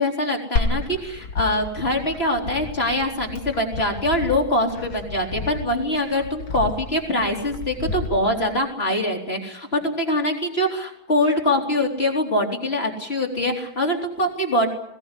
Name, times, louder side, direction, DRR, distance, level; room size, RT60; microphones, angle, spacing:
voice 1, 0.0-14.7, left 1 dB, 30° left, 2 dB, 4.1 m, -23 dB
Glass, 0.6-8.5, left 3 dB, 80° left, 3.1 m, -31 dB
22.0 x 17.5 x 9.9 m, 0.80 s
omnidirectional pair, 2.2 m